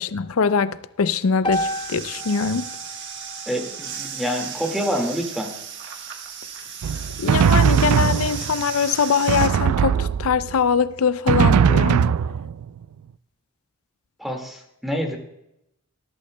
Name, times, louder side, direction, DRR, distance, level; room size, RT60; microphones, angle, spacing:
voice 1, 0.0-2.7 7.2-12.1, left 6 dB, 75° left, 0.5 m, -22 dB
sound 1, 1.4-5.6, left 1 dB, 20° left, 0.9 m, -33 dB
sound 2, 1.5-9.5, right 7 dB, 50° right, 1.4 m, -35 dB
voice 2, 3.5-5.5 14.2-15.2, equal, ahead, 1.9 m, -27 dB
Drum, 6.8-8.7 9.3-10.6 11.3-12.8, right 7 dB, 85° right, 0.3 m, -19 dB
20.5 x 11.5 x 2.2 m
head